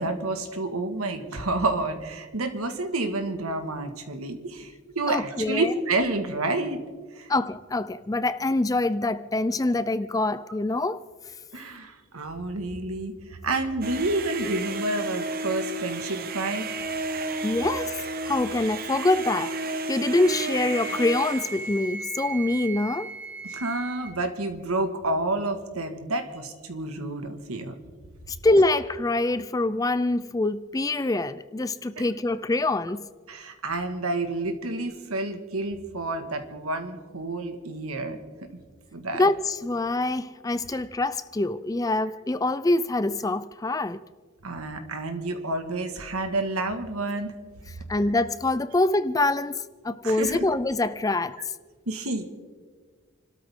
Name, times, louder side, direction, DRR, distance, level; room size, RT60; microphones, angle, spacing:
voice 1, 0.0-6.8 7.1-7.3 11.5-16.7 23.5-27.7 32.0-32.1 33.3-38.2 38.9-39.2 44.4-47.3 50.0-50.4 51.9-52.2, right 2 dB, 85° right, 1.7 m, -29 dB
voice 2, 5.1-5.7 7.3-11.0 17.4-18.0 18.2-23.1 28.3-33.1 39.1-44.0 47.9-51.4, left 2 dB, 15° left, 0.3 m, -25 dB
sound 1, 13.8-21.8, right 2 dB, 45° right, 0.8 m, -32 dB
Wind instrument woodwind instrument, 20.5-24.2, right 3 dB, 10° right, 1.7 m, -37 dB
29.0 x 13.0 x 3.7 m
head